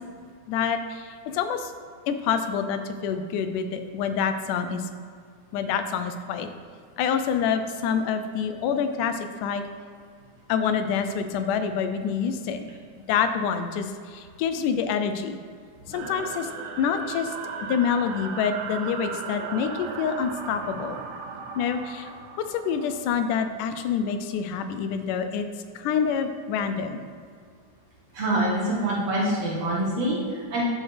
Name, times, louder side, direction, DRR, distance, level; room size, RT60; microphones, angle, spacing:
voice 1, 0.5-1.7 2.1-4.8 5.5-6.5 7.0-9.6 10.5-12.7 13.1-15.4 15.9-16.5 16.8-17.3 17.6-21.0 21.6-22.1 22.5-25.5 25.8-27.0, left 7 dB, 85° left, 8 dB, 2.1 m, -27 dB
sound 1, 15.9-23.9, right 5 dB, 75° right, 1.9 m, -37 dB
voice 2, 28.1-30.6, right 1 dB, 60° right, -5 dB, 2.7 m, -26 dB
10.5 x 7.2 x 3.4 m, 2.1 s
omnidirectional pair, 3.5 m